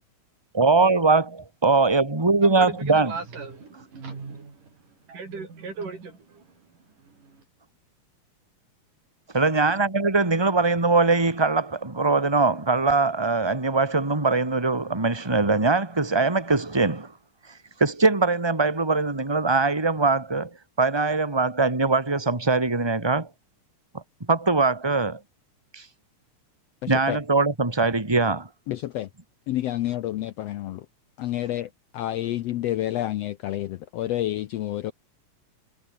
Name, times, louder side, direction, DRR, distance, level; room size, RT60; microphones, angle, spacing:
voice 1, 0.5-3.1 9.3-17.1 17.8-20.5 20.8-23.3 23.9-24.0 24.3-25.2 25.7-25.8 26.9-28.5, right 3 dB, 10° right, 2.9 m, -22 dB
voice 2, 2.4-4.7 5.1-6.4 7.0-7.4, right 4 dB, 80° right, 7.3 m, -37 dB
voice 3, 26.8-27.2 28.7-29.1 29.5-30.8 31.2-34.9, left 13 dB, 75° left, 1.5 m, -29 dB
omnidirectional pair, 3.6 m